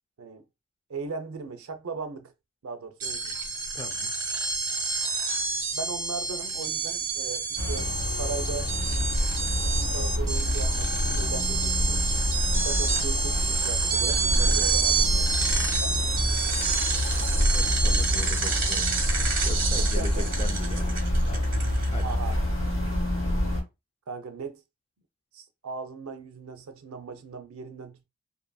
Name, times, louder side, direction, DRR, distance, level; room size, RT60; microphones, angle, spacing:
voice 1, 0.9-2.3 2.6-3.3 5.7-8.7 9.7-12.0 12.5-15.3 19.8-20.1 22.0-22.4 24.1-24.6 25.3-28.0, right 5 dB, 85° right, 0.5 m, -38 dB
sound 1, 3.0-22.1, right 4 dB, 40° right, 0.9 m, -29 dB
voice 2, 3.7-4.1 17.5-18.9 19.4-21.5 21.9-22.2, left 3 dB, 25° left, 0.3 m, -40 dB
sound 2, 7.6-23.6, equal, 55° left, 1.5 m, -27 dB
2.6 x 2.6 x 2.2 m
head